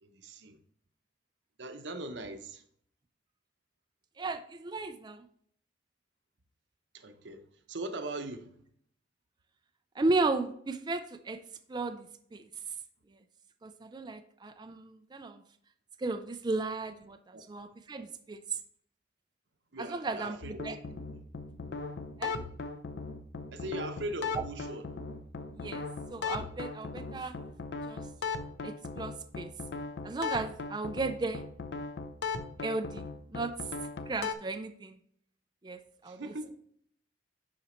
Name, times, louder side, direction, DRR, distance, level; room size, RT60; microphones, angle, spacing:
voice 1, 0.0-0.6 1.6-2.6 6.9-7.4 7.7-8.5 17.3-17.4 19.7-20.7 21.1-21.2 23.5-24.9 36.1-36.5, right 2 dB, 85° right, 0.8 m, -40 dB
voice 2, 4.2-5.2 10.0-11.4 11.7-12.1 12.3-12.5 13.6-15.4 16.0-18.4 19.8-20.8 22.2-22.4 24.3-24.4 25.6-25.8 26.1-27.3 27.9-28.0 28.6-29.5 30.0-31.4 32.6-33.5 34.1-35.0 35.6-36.5, right 3 dB, 25° right, 0.4 m, -35 dB
sound 1, 20.4-34.3, left 4 dB, 75° left, 0.6 m, -38 dB
10.5 x 4.1 x 3.1 m
head